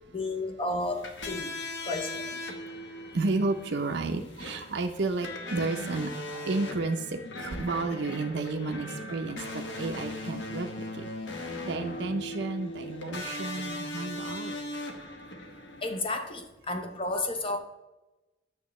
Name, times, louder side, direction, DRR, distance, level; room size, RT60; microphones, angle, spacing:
voice 1, 0.1-1.5 1.9-2.4 15.8-17.6, left 2 dB, 25° left, 5 dB, 0.6 m, -32 dB
sound 1, 0.8-16.0, left 1 dB, 60° left, 1.1 m, -39 dB
voice 2, 2.8-11.1 11.3-14.6, right 3 dB, 60° right, 5 dB, 0.5 m, -32 dB
8.9 x 6.4 x 3.1 m, 1.0 s
head